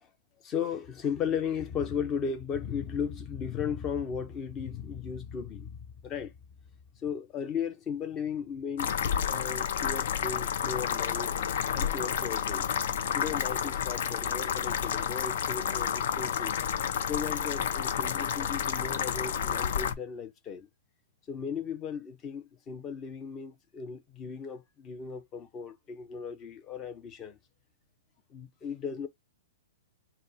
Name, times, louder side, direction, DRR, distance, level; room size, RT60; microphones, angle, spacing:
voice 1, 0.4-6.3 7.0-8.9 9.3-11.3 11.7-12.7 13.1-16.6 17.0-20.7 21.3-27.4 28.3-29.1, left 7 dB, 20° left, 0.9 m, -36 dB
sound 1, 8.8-19.9, left 8 dB, 60° left, 0.8 m, -30 dB
4.2 x 2.2 x 4.1 m
hypercardioid pair, 155°, 0 cm